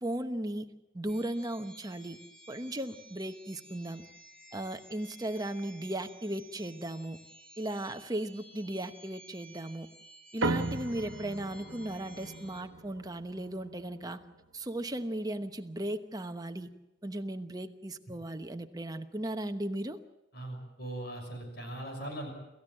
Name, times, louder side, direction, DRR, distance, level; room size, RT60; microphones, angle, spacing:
voice 1, 0.0-2.2 2.5-4.0 4.5-7.2 7.6-9.9 10.3-14.2 14.5-16.7 17.0-20.0, right 1 dB, 20° right, 7 dB, 1.0 m, -36 dB
sound 1, 1.1-12.6, right 1 dB, 5° left, 2.7 m, -55 dB
sound 2, 10.4-15.1, right 2 dB, 75° right, 1.1 m, -38 dB
voice 2, 20.3-22.3, right 1 dB, 55° left, 3 dB, 6.6 m, -40 dB
27.0 x 15.0 x 7.6 m, 0.98 s
head